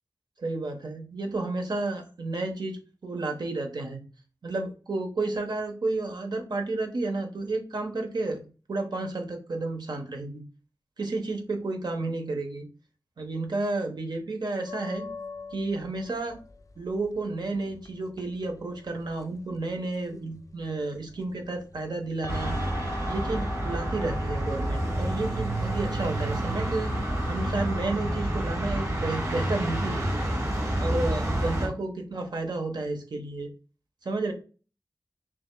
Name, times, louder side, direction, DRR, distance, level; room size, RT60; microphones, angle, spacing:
voice 1, 0.4-4.0 4.4-10.4 11.0-12.7 13.2-15.1 15.5-16.4 16.8-22.6 23.1-30.3 30.8-33.5 34.0-34.3, right 2 dB, 85° right, 3 dB, 1.1 m, -31 dB
sound 1, 14.7-31.0, left 2 dB, 50° left, 0.4 m, -43 dB
sound 2, 22.3-31.7, right 1 dB, 45° right, 1.8 m, -29 dB
5.9 x 3.5 x 2.2 m, 0.35 s
wide cardioid pair, 75°, 7 cm